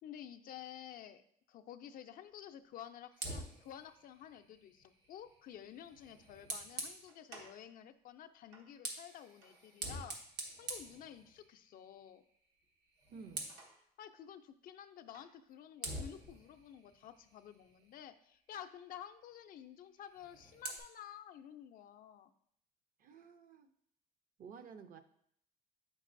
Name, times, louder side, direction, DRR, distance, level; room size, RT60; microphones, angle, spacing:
voice 1, 0.0-10.2 10.6-12.2 14.0-22.3, left 10 dB, 60° left, 7 dB, 0.4 m, -52 dB
Fire, 3.1-7.6 8.5-11.7 12.1-12.4 12.7-13.8 15.1-15.3 15.8-18.1 20.0-20.8, right 2 dB, 90° right, 1.2 m, -47 dB
voice 2, 13.1-13.5 23.0-23.7 24.4-25.0, right 5 dB, 55° right, 9 dB, 0.6 m, -52 dB
7.2 x 5.3 x 2.5 m, 0.68 s
cardioid pair, 110°, 17 cm